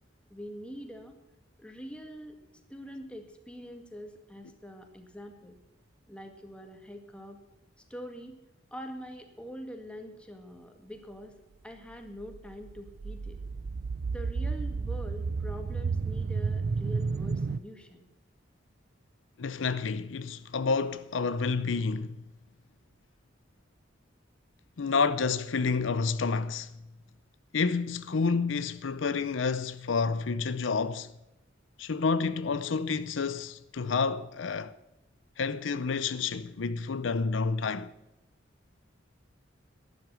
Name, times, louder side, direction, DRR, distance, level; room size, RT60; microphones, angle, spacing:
voice 1, 0.3-1.2 1.6-2.4 2.7-5.6 6.1-7.4 7.9-8.4 8.7-11.3 11.6-13.4 14.1-18.1, equal, 5° left, 1.8 m, -44 dB
sound 1, 12.2-17.6, right 4 dB, 55° right, 0.4 m, -32 dB
voice 2, 19.4-22.2 24.8-26.7 27.5-31.1 31.8-34.7 35.4-37.9, left 4 dB, 80° left, 0.6 m, -29 dB
12.0 x 11.0 x 6.1 m
head